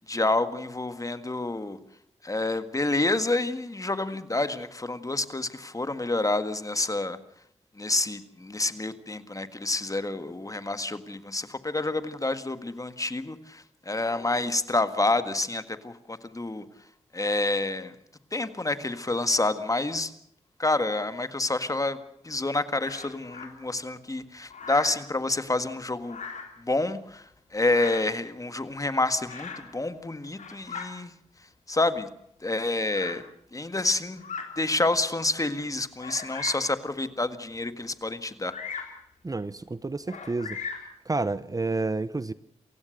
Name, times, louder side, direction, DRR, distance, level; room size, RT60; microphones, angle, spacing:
voice 1, 0.0-1.8 2.2-7.2 7.8-16.6 17.1-17.9 18.3-20.1 20.6-22.0 22.2-26.2 26.6-31.1 31.7-32.1 32.4-33.2 33.5-34.3 34.6-38.5, left 2 dB, 25° left, 1.8 m, -28 dB
Bird vocalization bird call bird song, 22.8-23.5 24.5-25.0 26.0-26.6 27.6-28.2 29.3-29.7 30.2-30.9 31.8-31.9 32.9-33.2 34.1-34.5 35.1-35.2 36.0-36.7 38.5-39.0 40.1-40.9, left 5 dB, 80° left, 3.3 m, -38 dB
voice 2, 39.2-40.6 41.1-42.3, right 3 dB, 30° right, 0.8 m, -30 dB
28.0 x 16.0 x 6.6 m
cardioid pair, 55°, 12 cm